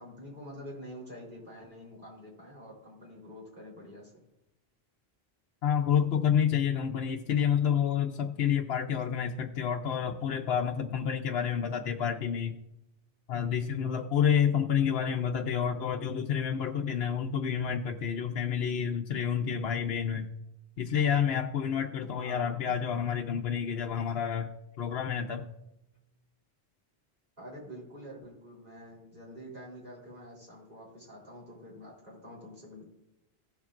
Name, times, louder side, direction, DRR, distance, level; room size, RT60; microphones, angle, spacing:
voice 1, 0.0-4.1 22.2-22.7 27.4-32.8, equal, 55° right, -5 dB, 3.9 m, -47 dB
voice 2, 5.6-12.6 13.3-20.3 20.8-24.5 24.8-25.5, left 8 dB, 80° left, 2 dB, 0.9 m, -29 dB
16.5 x 7.3 x 2.5 m, 0.87 s
omnidirectional pair, 1.0 m